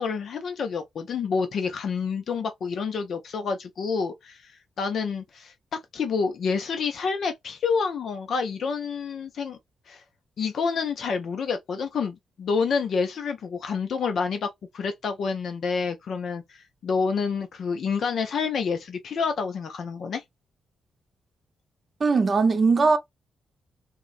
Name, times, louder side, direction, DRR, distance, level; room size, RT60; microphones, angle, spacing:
voice 1, 0.0-9.6 9.9-10.0 10.4-14.5 14.7-20.2, left 5 dB, 60° left, 0.4 m, -28 dB
voice 2, 22.0-23.0, right 4 dB, 35° right, 0.5 m, -20 dB
3.6 x 2.0 x 2.5 m
wide cardioid pair, 145°, 0 cm